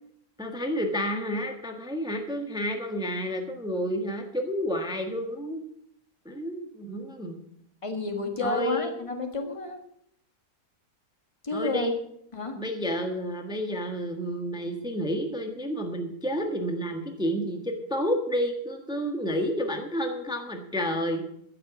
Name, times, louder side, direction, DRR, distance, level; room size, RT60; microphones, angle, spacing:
voice 1, 0.4-5.7 6.2-7.4 8.4-8.9 11.5-11.9 12.6-21.2, equal, 5° right, 3 dB, 1.4 m, -30 dB
voice 2, 7.8-9.8 11.4-11.9 12.3-12.6, left 3 dB, 20° left, 4 dB, 1.7 m, -30 dB
14.0 x 6.7 x 8.2 m, 0.72 s
omnidirectional pair, 1.7 m